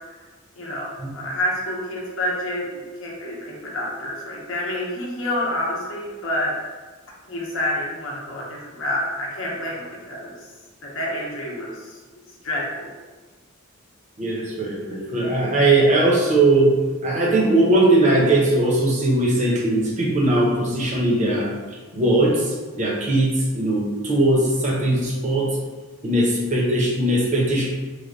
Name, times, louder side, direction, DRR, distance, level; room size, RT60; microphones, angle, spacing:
voice 1, 0.6-6.6 7.3-10.4 10.8-12.0 12.4-12.9, left 1 dB, 65° left, -4 dB, 0.7 m, -28 dB
voice 2, 14.2-16.7 17.0-21.5 21.9-25.5 26.0-27.6, right 2 dB, 35° right, -3 dB, 0.7 m, -19 dB
3.3 x 2.2 x 3.8 m, 1.3 s
head